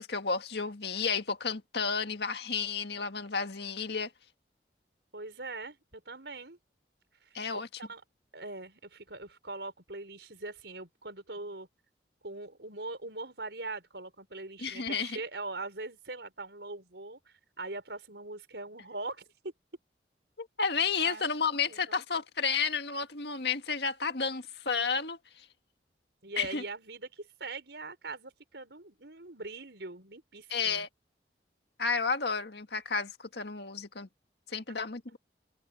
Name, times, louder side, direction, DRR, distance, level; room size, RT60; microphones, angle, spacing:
voice 1, 0.0-4.1 7.3-7.7 14.6-15.2 20.4-25.5 26.4-26.6 30.5-30.9 31.8-34.1 34.5-35.2, left 5 dB, 70° left, 1.8 m, -32 dB
voice 2, 5.1-6.6 7.2-7.4 7.8-8.0 8.3-11.7 12.2-19.5 21.0-21.3 21.7-22.0 26.2-30.9, right 2 dB, 75° right, 5.2 m, -42 dB
open air
head